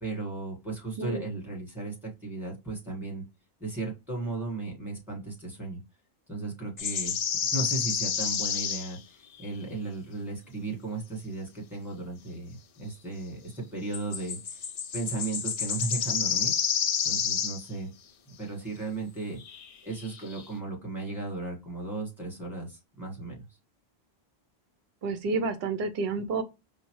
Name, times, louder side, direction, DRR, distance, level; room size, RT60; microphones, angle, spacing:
voice 1, 0.0-3.2 3.6-5.8 6.3-7.2 7.5-14.6 14.9-16.5 17.0-17.9 18.3-19.4 19.8-23.4, right 3 dB, ahead, 1.4 m, -35 dB
sound 1, 6.8-9.0 9.3-9.5 13.9-17.7 19.4-19.7 20.0-20.5, left 7 dB, 55° left, 0.4 m, -30 dB
voice 2, 25.0-26.4, right 4 dB, 70° right, 0.8 m, -29 dB
4.9 x 2.1 x 3.0 m
omnidirectional pair, 1.1 m